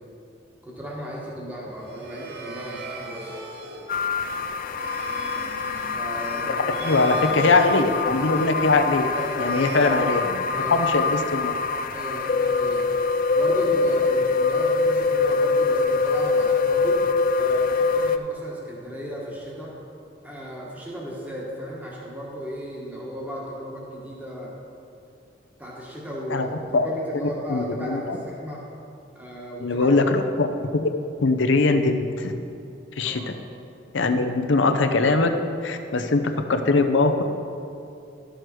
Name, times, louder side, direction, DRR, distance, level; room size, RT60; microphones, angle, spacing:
voice 1, 0.6-3.4 5.9-7.3 9.1-9.9 10.5-10.8 11.9-12.9 13.3-17.0 17.4-19.7 20.2-24.5 25.6-28.6 29.1-29.9 33.0-33.3, equal, 10° right, -5 dB, 1.6 m, -35 dB
sound 1, 1.7-10.7, right 2 dB, 55° right, 1.0 m, -40 dB
sound 2, 3.9-18.2, left 4 dB, 45° left, 0.4 m, -24 dB
voice 2, 6.8-9.1 9.4-11.5 26.3-26.5 26.7-26.9 27.5-28.2 29.6-30.5 31.2-32.3 33.0-33.3 33.9-35.3 35.6-36.2 36.5-37.2, left 3 dB, 75° left, 7 dB, 0.7 m, -21 dB
12.5 x 6.4 x 4.7 m, 2.6 s
head